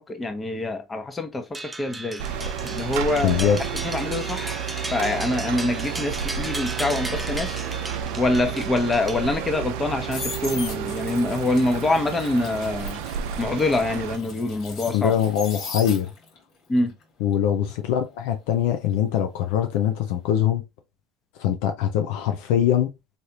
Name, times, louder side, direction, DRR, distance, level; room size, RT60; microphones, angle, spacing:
voice 1, 0.1-2.2 2.6-4.6 4.9-7.6 8.2-13.0 13.4-15.1 16.7-16.9, left 2 dB, 25° left, 0.9 m, -25 dB
sound 1, 1.5-9.7, right 1 dB, 10° right, 0.4 m, -36 dB
sound 2, 2.2-14.2, right 8 dB, 75° right, 0.4 m, -31 dB
voice 2, 3.2-3.6 14.9-16.1 17.2-20.6 21.4-22.9, left 10 dB, 75° left, 0.5 m, -22 dB
sound 3, 9.7-16.4 16.8-19.7 19.9-20.3, left 4 dB, 60° left, 1.3 m, -39 dB
3.2 x 2.7 x 2.8 m
hypercardioid pair, 80°, 0 cm